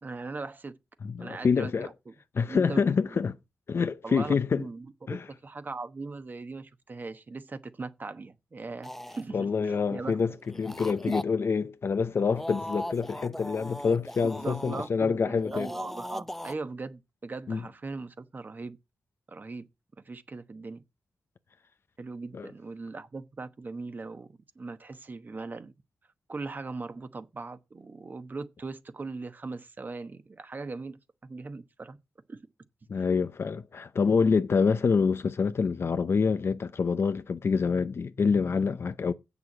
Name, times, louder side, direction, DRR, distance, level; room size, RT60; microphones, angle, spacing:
voice 1, 0.0-0.8 1.2-2.1 2.4-3.2 4.0-10.2 11.1-11.2 14.2-18.8 19.3-19.6 20.0-20.8 22.0-24.3 24.5-25.7 26.3-32.0 32.3-32.4, right 3 dB, 35° right, 1.0 m, -39 dB
voice 2, 1.0-1.9 2.4-3.4 3.7-4.6 5.1-5.2 9.3-10.3 10.6-15.7 17.5-17.6 22.3-22.5 32.9-39.1, left 5 dB, 45° left, 0.6 m, -26 dB
sound 1, 8.8-9.2 10.4-11.2 12.1-14.9 15.4-16.5, left 1 dB, 5° left, 0.7 m, -38 dB
8.3 x 6.9 x 7.3 m
wide cardioid pair, 125°, 6 cm